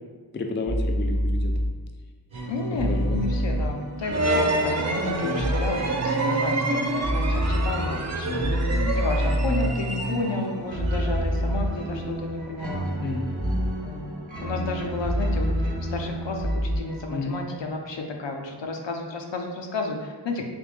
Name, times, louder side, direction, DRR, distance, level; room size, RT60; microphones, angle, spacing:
voice 1, 0.3-1.5 2.7-3.2 5.2-5.6 8.2-9.0 13.0-13.3 17.1-17.4, left 3 dB, 25° left, 3 dB, 0.4 m, -31 dB
sound 1, 0.7-1.7 2.8-3.7 5.4-5.7 7.0-7.7 8.4-9.7 10.8-11.7 13.4-13.7 15.0-15.7 16.4-16.8, equal, 60° right, 0.8 m, -25 dB
sound 2, 2.3-17.8, right 1 dB, 85° right, 0.9 m, -33 dB
voice 2, 2.5-8.4 8.9-12.9 13.8-14.1 14.4-20.4, left 3 dB, 70° left, 3 dB, 0.6 m, -32 dB
sound 3, 4.1-10.5, right 2 dB, 40° right, 0.4 m, -27 dB
3.4 x 2.9 x 3.2 m, 1.4 s
wide cardioid pair, 60°, 45 cm